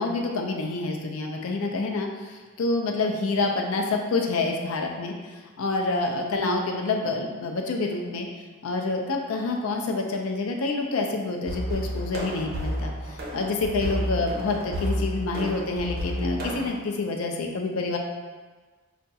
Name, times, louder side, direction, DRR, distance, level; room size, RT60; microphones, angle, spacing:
voice 1, 0.0-8.3 8.6-18.0, left 3 dB, 75° left, 2 dB, 0.4 m, -27 dB
sound 1, 11.4-16.7, equal, 45° right, 0.5 m, -31 dB
4.8 x 2.3 x 2.7 m, 1.4 s
head